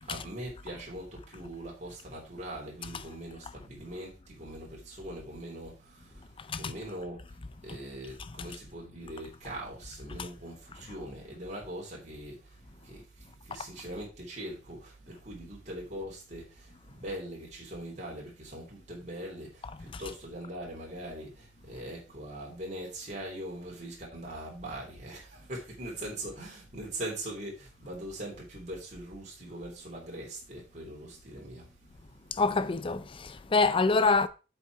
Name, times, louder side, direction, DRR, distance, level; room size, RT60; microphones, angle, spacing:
voice 1, 0.1-7.4 7.6-12.5 12.8-31.7, right 1 dB, 40° right, 3.3 m, -41 dB
voice 2, 6.4-6.7 8.2-8.5 10.2-10.3 19.9-20.0 32.3-34.3, left 4 dB, 30° left, 0.4 m, -27 dB
7.9 x 5.7 x 4.7 m
head